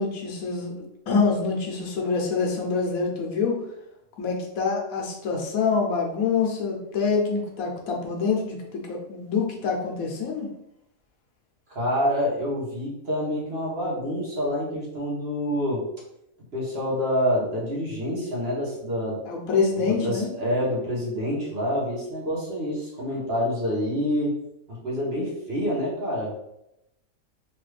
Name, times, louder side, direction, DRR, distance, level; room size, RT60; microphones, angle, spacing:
voice 1, 0.0-3.6 4.2-10.5 19.2-20.3, left 5 dB, 75° left, -1 dB, 1.2 m, -26 dB
voice 2, 11.7-15.8 16.5-19.2 19.8-24.3 24.7-26.3, equal, 50° right, -5 dB, 1.1 m, -27 dB
3.1 x 2.4 x 3.2 m, 0.84 s
omnidirectional pair, 1.5 m